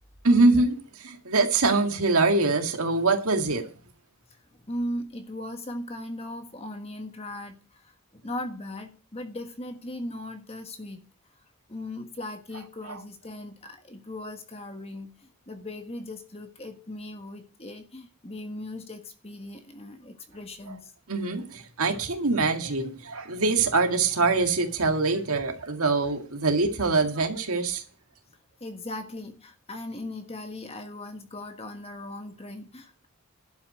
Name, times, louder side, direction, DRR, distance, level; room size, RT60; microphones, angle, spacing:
voice 1, 0.2-3.7 12.9-13.0 21.1-27.8, right 3 dB, 75° right, 2.0 m, -24 dB
voice 2, 4.7-11.0 11.7-20.9 28.6-33.1, left 1 dB, 25° left, 1.4 m, -38 dB
11.5 x 5.7 x 7.8 m
head